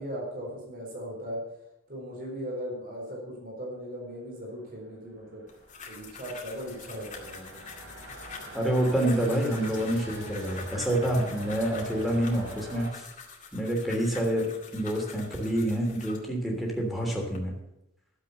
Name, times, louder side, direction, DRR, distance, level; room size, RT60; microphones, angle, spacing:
voice 1, 0.0-1.4 1.9-5.4 5.9-7.6, equal, 45° right, -2 dB, 4.3 m, -38 dB
sound 1, 5.0-12.9, right 1 dB, 75° right, 3.8 m, -44 dB
sound 2, 5.5-16.3 16.9-17.4, left 5 dB, 40° left, 2.3 m, -46 dB
voice 2, 8.5-13.0 13.5-14.5 14.7-17.5, right 1 dB, ahead, -1 dB, 3.1 m, -27 dB
13.5 x 7.6 x 6.8 m, 0.86 s
head